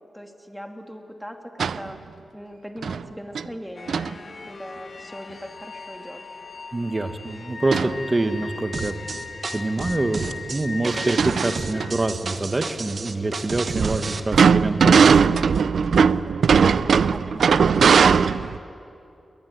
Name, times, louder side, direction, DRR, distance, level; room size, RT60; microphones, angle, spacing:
voice 1, 0.1-2.0 2.3-4.2 4.5-6.2 16.5-17.8 18.0-18.4, equal, ahead, 3 dB, 2.7 m, -39 dB
sound 1, 1.6-1.9 2.8-3.0 3.3-3.5 3.9-4.1 7.7-8.0 8.4-8.5 9.8-9.9 10.2-10.3 10.9-11.9 13.8-18.6, right 6 dB, 85° right, 0.5 m, -18 dB
sound 2, 3.8-12.1, left 4 dB, 55° left, 1.1 m, -39 dB
voice 2, 6.7-9.0 9.5-15.4, right 2 dB, 30° right, 7 dB, 1.9 m, -26 dB
sound 3, 8.7-14.2, right 4 dB, 60° right, 1.5 m, -31 dB
22.0 x 21.5 x 9.9 m, 2.7 s
cardioid pair, 75°, 0 cm